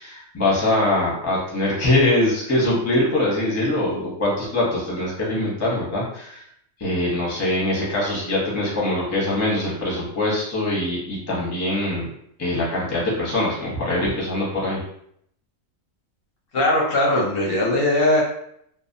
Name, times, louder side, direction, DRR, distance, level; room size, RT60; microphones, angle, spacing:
voice 1, 0.0-6.5 6.8-12.1 12.4-14.8, left 1 dB, 20° left, -6 dB, 0.5 m, -23 dB
voice 2, 16.5-18.2, left 1 dB, 60° left, -3 dB, 0.6 m, -19 dB
2.6 x 2.0 x 2.6 m, 0.72 s
omnidirectional pair, 1.4 m